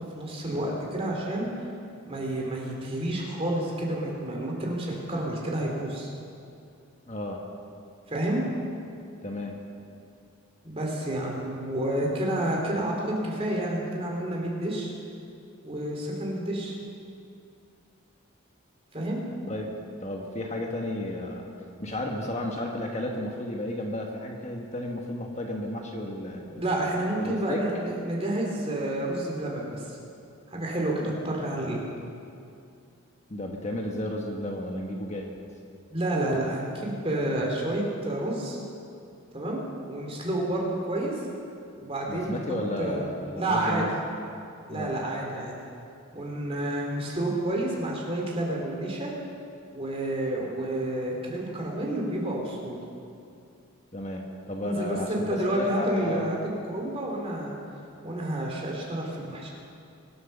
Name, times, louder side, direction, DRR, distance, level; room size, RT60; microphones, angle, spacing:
voice 1, 0.0-1.5 2.1-6.1 8.1-8.4 10.6-14.9 15.6-16.7 18.9-19.2 26.5-30.0 30.5-31.8 35.9-38.6 39.3-41.1 41.8-42.4 42.8-43.0 43.4-43.8 44.7-45.5 46.1-49.1 49.7-52.8 54.6-56.4 56.7-57.5 58.0-59.5, right 1 dB, 25° right, -2 dB, 3.0 m, -29 dB
voice 2, 7.1-7.4 9.2-9.5 19.5-19.7 20.0-21.5 21.8-26.6 27.2-27.6 33.3-35.3 42.1-43.9 44.7-44.9 53.9-56.3, left 1 dB, 30° left, 1 dB, 1.2 m, -33 dB
23.5 x 7.9 x 6.7 m, 2.5 s
head